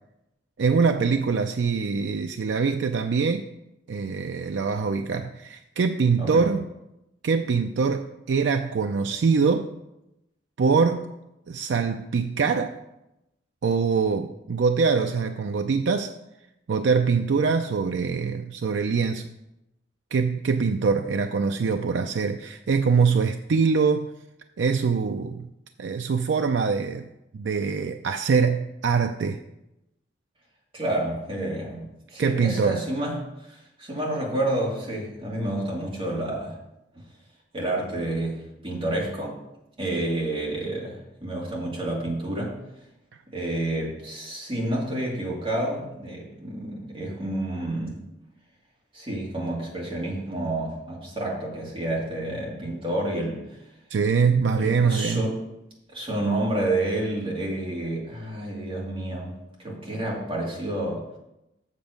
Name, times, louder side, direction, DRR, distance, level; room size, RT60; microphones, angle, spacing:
voice 1, 0.6-3.5 3.9-6.7 7.2-9.7 10.6-11.1 11.5-12.8 13.6-16.1 16.7-19.3 20.1-24.1 24.6-25.5 25.8-27.1 27.3-29.4 32.2-32.8 53.9-55.2, right 5 dB, 75° right, 6 dB, 0.4 m, -23 dB
voice 2, 6.2-6.5 30.7-33.1 33.5-36.6 37.5-39.4 39.8-42.6 43.3-48.0 48.9-53.4 54.5-55.4 55.9-61.0, right 1 dB, 30° right, -4 dB, 2.5 m, -29 dB
7.5 x 6.9 x 5.1 m, 0.90 s
head